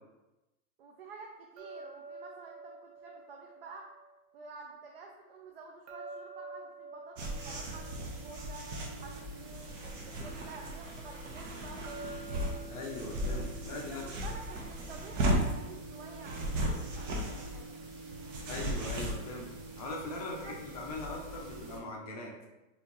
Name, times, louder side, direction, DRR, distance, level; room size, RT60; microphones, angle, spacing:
voice 1, 0.8-3.9 4.3-8.6 9.0-12.2 13.9-17.7 20.3-20.6, right 4 dB, 45° right, 1 dB, 0.4 m, -50 dB
sound 1, 1.6-4.6 5.9-9.4 11.8-14.9, right 3 dB, 80° right, 0.8 m, -49 dB
sound 2, 7.2-21.8, right 1 dB, 60° right, 1.1 m, -37 dB
voice 2, 12.7-14.1 18.4-19.5 19.8-22.3, left 2 dB, 25° left, -1 dB, 0.5 m, -40 dB
4.5 x 3.1 x 2.9 m, 1.0 s
supercardioid pair, 175°, 43 cm